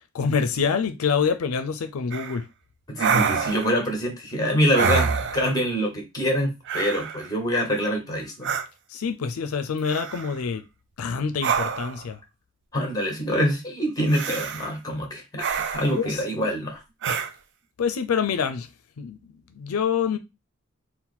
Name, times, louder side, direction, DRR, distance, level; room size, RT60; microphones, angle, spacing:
voice 1, 0.1-2.5 8.9-10.6 11.0-12.2 16.0-16.5 17.8-18.7 19.0-19.2 19.6-20.2, left 6 dB, 90° left, 0.4 m, -26 dB
sound 1, 2.1-2.4 3.0-3.8 4.7-5.6 6.7-7.3 8.4-8.7 9.8-10.4 11.4-12.0 14.1-14.7 15.4-16.0 17.0-17.3, right 6 dB, 55° right, 0.5 m, -26 dB
voice 2, 2.9-8.5 12.7-16.8, equal, 20° left, 1.4 m, -25 dB
4.0 x 2.1 x 4.3 m
head